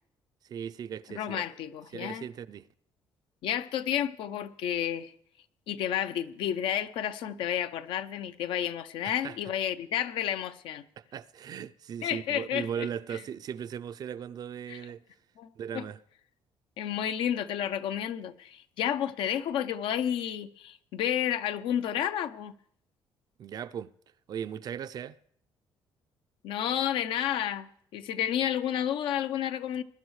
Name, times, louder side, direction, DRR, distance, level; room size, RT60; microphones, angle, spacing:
voice 1, 0.4-1.5 1.9-2.7 9.0-9.4 11.0-15.0 15.6-16.0 23.4-23.9 24.3-25.2, right 8 dB, 50° right, 0.4 m, -38 dB
voice 2, 1.1-2.2 3.4-5.1 5.7-10.8 12.0-12.9 14.7-14.8 15.4-15.5 15.7-15.8 16.8-22.5 26.4-29.8, left 10 dB, 80° left, 0.7 m, -31 dB
21.0 x 11.5 x 3.2 m
cardioid pair, 125°, 9 cm